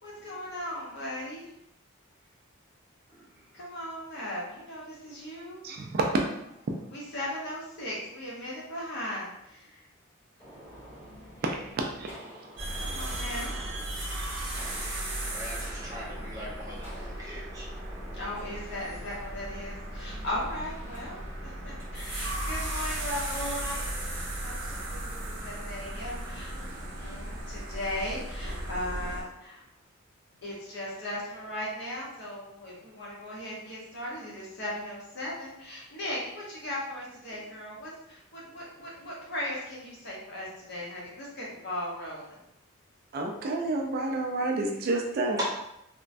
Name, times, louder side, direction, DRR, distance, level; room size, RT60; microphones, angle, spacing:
voice 1, 0.0-1.5 3.5-5.6 6.9-9.8 12.8-13.6 18.1-26.5 27.0-29.6 30.4-42.4, left 1 dB, 55° left, -5 dB, 0.9 m, -37 dB
voice 2, 5.6-6.1 11.4-11.5 12.0-12.2 43.1-45.4, right 2 dB, 45° right, 2 dB, 0.3 m, -29 dB
Gunshot gunfire, 10.4-27.4, equal, 15° left, 1.3 m, -49 dB
sound 1, 12.6-29.2, right 1 dB, 65° right, 0.7 m, -36 dB
voice 3, 15.3-17.6 24.6-24.8 25.4-25.6 25.9-27.4, equal, 15° right, -6 dB, 0.8 m, -45 dB
3.0 x 2.1 x 2.5 m, 0.82 s
head